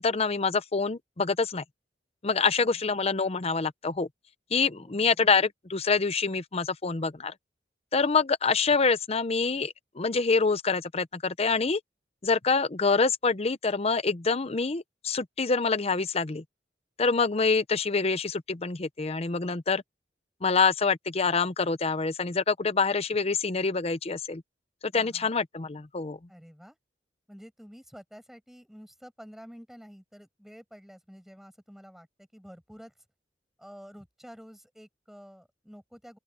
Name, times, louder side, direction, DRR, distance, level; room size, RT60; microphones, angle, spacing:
voice 1, 0.0-1.6 2.2-4.1 4.5-7.3 7.9-11.8 12.2-16.4 17.0-19.8 20.4-24.4 24.8-26.2, left 4 dB, 35° left, 0.7 m, -26 dB
voice 2, 2.3-2.8 4.7-5.3 24.9-25.4 26.3-26.8 27.3-32.9 33.6-36.2, equal, ahead, 7.0 m, -50 dB
open air
head